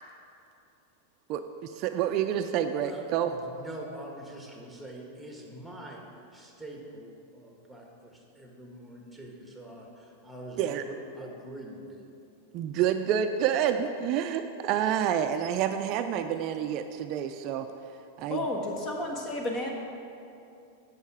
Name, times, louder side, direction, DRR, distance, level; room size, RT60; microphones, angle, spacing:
voice 1, 1.3-3.3 10.6-10.8 12.5-17.7 18.2-18.4, right 9 dB, 45° right, 8 dB, 0.4 m, -28 dB
voice 2, 2.8-6.0 6.3-12.2, right 1 dB, 5° right, 0 dB, 1.4 m, -44 dB
voice 3, 18.3-19.7, left 1 dB, 35° left, 1 dB, 1.4 m, -32 dB
8.4 x 6.4 x 4.8 m, 2.6 s
hypercardioid pair, 120°, 0 cm